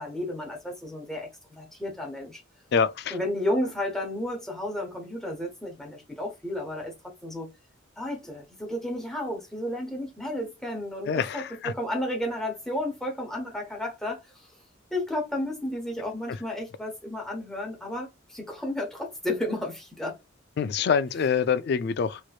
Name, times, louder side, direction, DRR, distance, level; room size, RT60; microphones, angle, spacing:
voice 1, 0.0-2.4 3.1-6.9 7.2-7.5 8.0-14.5 14.9-20.2, left 1 dB, ahead, 0.9 m, -32 dB
voice 2, 2.7-3.2 11.1-11.7 20.6-22.2, left 6 dB, 55° left, 0.3 m, -25 dB
3.1 x 2.9 x 2.3 m
head